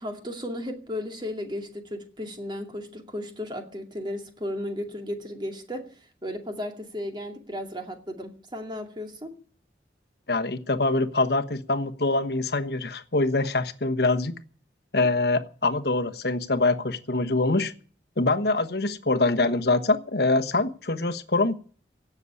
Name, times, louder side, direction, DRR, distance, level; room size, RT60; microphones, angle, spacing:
voice 1, 0.0-9.3, left 1 dB, 25° right, 4 dB, 2.4 m, -35 dB
voice 2, 10.3-14.3 14.9-17.7 18.2-21.5, left 2 dB, 60° left, 8 dB, 1.2 m, -24 dB
17.0 x 7.2 x 9.8 m, 0.44 s
head